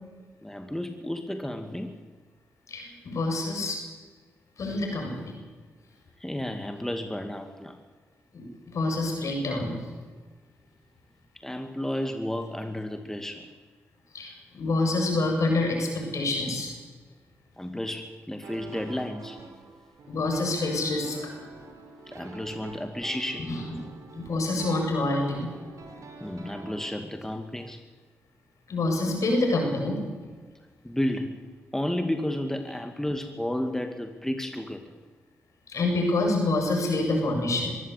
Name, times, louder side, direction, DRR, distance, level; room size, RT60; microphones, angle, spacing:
voice 1, 0.4-1.9 6.2-7.8 11.3-13.5 17.6-19.4 22.1-23.5 26.2-27.8 30.8-31.4 31.7-34.9, left 1 dB, 5° left, 6 dB, 2.4 m, -32 dB
voice 2, 2.7-3.8 4.6-5.4 8.3-9.8 14.1-16.7 20.1-21.2 23.4-23.6 24.1-25.5 28.7-30.1 35.7-37.8, left 2 dB, 65° left, 2 dB, 7.5 m, -27 dB
sound 1, 18.4-26.9, right 3 dB, 65° right, 3.7 m, -46 dB
23.0 x 16.0 x 8.4 m, 1.4 s
supercardioid pair, 45°, 6 cm